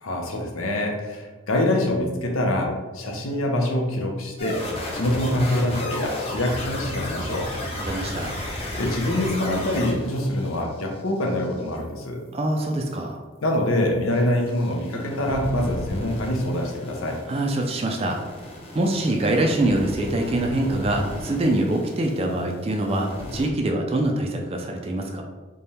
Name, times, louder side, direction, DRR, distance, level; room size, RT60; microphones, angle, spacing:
voice 1, 0.0-4.6 4.9-7.5 8.8-12.2 13.4-17.2, left 1 dB, 90° left, 1 dB, 0.7 m, -25 dB
sound 1, 4.4-11.7 14.2-22.5 22.8-23.5, left 1 dB, 30° left, 0.7 m, -34 dB
voice 2, 7.8-8.3 12.3-13.2 17.3-18.2 18.7-25.2, right 1 dB, 30° right, 1 dB, 0.3 m, -24 dB
3.4 x 2.3 x 4.1 m, 1.3 s
head